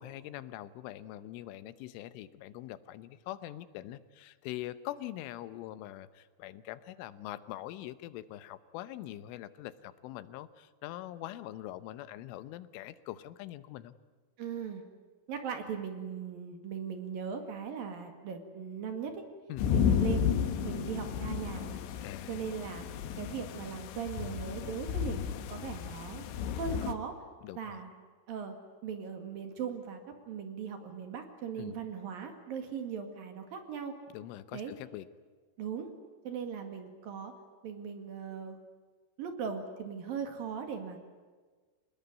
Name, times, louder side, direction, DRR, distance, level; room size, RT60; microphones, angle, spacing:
voice 1, 0.0-14.0 19.5-19.7 22.0-22.3 27.4-27.8 31.6-31.8 34.1-35.1, left 14 dB, 90° left, 14 dB, 3.4 m, -43 dB
voice 2, 14.4-14.8 15.3-19.2 19.7-20.3 20.6-21.8 22.3-22.9 23.2-26.3 26.5-27.2 27.6-27.9 28.3-28.5 28.8-33.9 34.5-34.7 35.6-35.9 36.2-37.3 37.6-38.6 39.2-41.1, right 7 dB, 55° right, 6 dB, 3.2 m, -39 dB
sound 1, 19.6-26.9, left 8 dB, 70° left, 3.1 m, -33 dB
25.5 x 19.5 x 9.5 m, 1.4 s
omnidirectional pair, 5.5 m